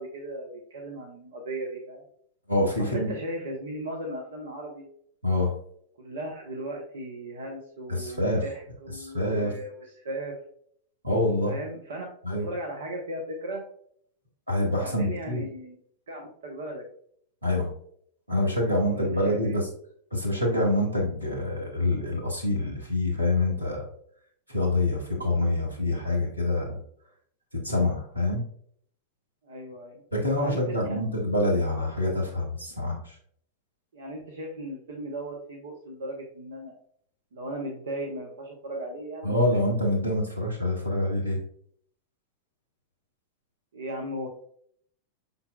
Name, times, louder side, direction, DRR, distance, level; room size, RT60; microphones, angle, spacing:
voice 1, 0.0-2.0 2.8-4.9 6.0-10.4 11.5-12.0 12.4-13.6 14.7-15.8 16.1-16.8 18.9-19.6 29.4-30.0 30.4-31.0 33.9-36.7 37.3-39.7 43.7-44.3, right 1 dB, 65° right, 0 dB, 0.8 m, -37 dB
voice 2, 2.5-3.1 5.2-5.5 7.9-8.4 9.0-9.5 11.0-11.5 12.2-12.5 14.5-15.4 17.4-17.7 18.3-19.7 20.1-23.8 24.5-26.8 27.6-28.4 30.1-33.1 39.2-41.4, left 1 dB, 90° right, -3 dB, 1.4 m, -26 dB
5.6 x 4.0 x 2.2 m, 0.64 s
figure-of-eight pair, 90°, 0 cm